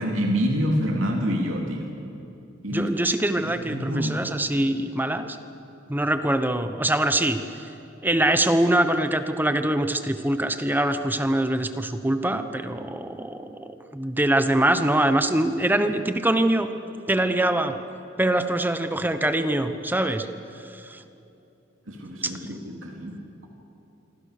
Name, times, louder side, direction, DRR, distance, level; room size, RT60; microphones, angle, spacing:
voice 1, 0.0-1.9 2.6-2.9 3.3-4.2 21.9-23.5, equal, 80° right, 1 dB, 2.9 m, -27 dB
voice 2, 2.7-5.3 5.9-7.4 8.0-16.7 17.1-17.8 18.2-20.3 20.7-21.0 22.2-22.3, right 1 dB, 10° right, 8 dB, 1.0 m, -23 dB
27.0 x 24.0 x 6.7 m, 2.9 s
head